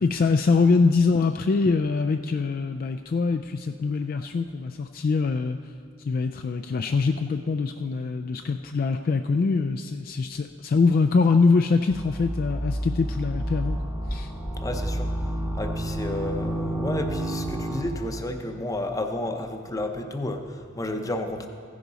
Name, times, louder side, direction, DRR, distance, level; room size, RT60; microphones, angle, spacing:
voice 1, 0.0-5.6 6.0-13.8 14.1-14.3, left 4 dB, 45° left, 7 dB, 0.3 m, -23 dB
sound 1, 11.9-18.2, right 1 dB, 10° right, 0.9 m, -30 dB
voice 2, 14.6-21.5, left 1 dB, 15° left, 5 dB, 0.7 m, -32 dB
15.5 x 10.0 x 4.0 m, 2.3 s
head